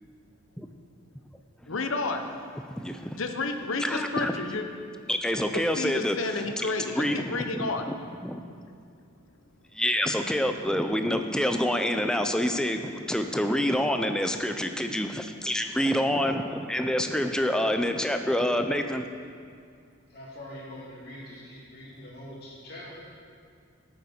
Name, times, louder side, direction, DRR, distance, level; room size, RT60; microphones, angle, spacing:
voice 1, 1.7-2.3 3.2-4.6 5.5-7.9, left 3 dB, 80° left, 6 dB, 0.9 m, -31 dB
voice 2, 2.8-3.2 3.8-4.3 5.1-6.2 6.6-7.4 8.2-8.4 9.7-19.1, equal, 5° left, 6 dB, 0.4 m, -27 dB
voice 3, 20.1-23.0, left 1 dB, 50° left, -6 dB, 3.0 m, -43 dB
13.0 x 8.0 x 4.4 m, 2.2 s
head